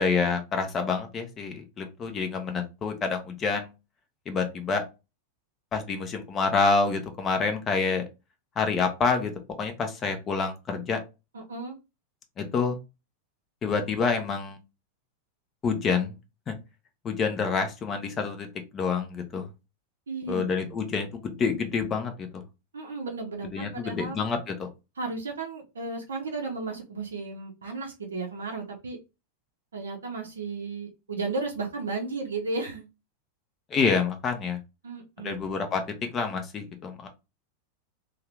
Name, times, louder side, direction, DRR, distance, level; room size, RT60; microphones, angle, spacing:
voice 1, 0.0-3.7 4.3-4.8 5.7-8.0 8.6-9.3 9.6-11.0 12.4-12.8 13.6-14.6 15.6-16.1 16.5-16.6 17.0-18.5 18.7-19.5 20.3-22.4 23.5-24.7 33.7-34.6 35.2-37.1, left 5 dB, 25° left, 6 dB, 0.6 m, -27 dB
voice 2, 11.3-11.8 20.1-20.7 22.7-24.2 25.0-29.0 29.7-32.9 34.8-35.6, right 3 dB, 70° right, 1 dB, 0.6 m, -34 dB
2.7 x 2.3 x 3.2 m, 0.27 s
figure-of-eight pair, 90°, 0 cm